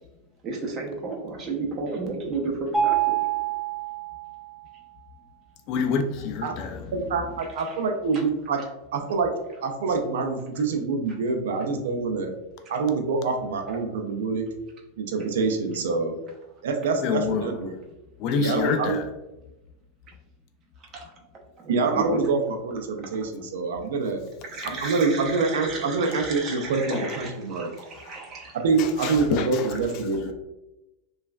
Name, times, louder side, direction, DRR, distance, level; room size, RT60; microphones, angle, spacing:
voice 1, 0.4-3.2 20.9-21.0 21.6-22.2 23.1-23.2 24.5-28.5, right 3 dB, 35° right, 0.7 m, -33 dB
Mallet percussion, 2.7-4.7, right 10 dB, ahead, 0.5 m, -26 dB
voice 2, 5.7-6.8 17.0-17.5 18.2-19.1 26.9-27.1 28.0-28.2 28.8-29.7 30.1-30.3, left 5 dB, 50° left, 0.3 m, -27 dB
voice 3, 6.9-8.6 8.9-9.3 9.6-12.3 12.7-14.5 15.0-16.2 16.6-17.7 18.4-19.0 21.7-24.2 24.6-27.7 28.6-30.3, right 4 dB, 80° right, 0.4 m, -26 dB
3.0 x 2.3 x 2.3 m
supercardioid pair, 120°, 0 cm